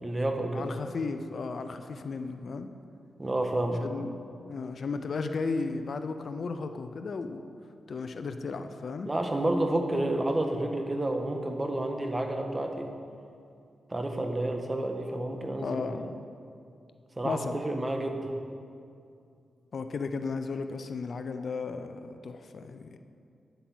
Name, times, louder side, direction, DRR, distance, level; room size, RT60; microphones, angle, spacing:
voice 1, 0.0-0.7 3.2-3.8 9.0-12.9 13.9-16.0 17.2-18.3, right 1 dB, 25° right, 4 dB, 1.4 m, -30 dB
voice 2, 0.5-2.7 3.8-4.1 4.4-7.4 7.9-9.1 15.6-16.2 17.2-17.6 19.7-23.0, left 4 dB, 65° left, 8 dB, 0.6 m, -34 dB
9.6 x 7.9 x 6.2 m, 2.4 s
cardioid pair, 55°, 0 cm